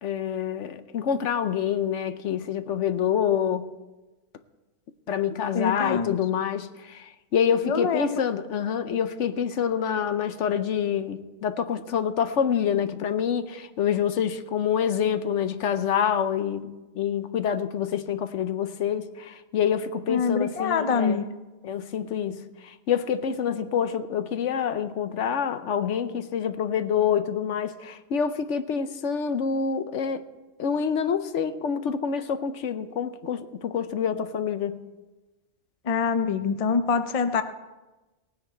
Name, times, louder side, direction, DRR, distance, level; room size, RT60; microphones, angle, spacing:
voice 1, 0.0-3.7 5.1-21.2 21.6-30.2 30.6-34.8, left 8 dB, 65° left, 1.0 m, -27 dB
voice 2, 5.5-6.2 7.6-8.2 20.1-21.2 35.9-37.4, left 5 dB, 40° left, 0.5 m, -25 dB
18.0 x 9.6 x 4.4 m
omnidirectional pair, 1.4 m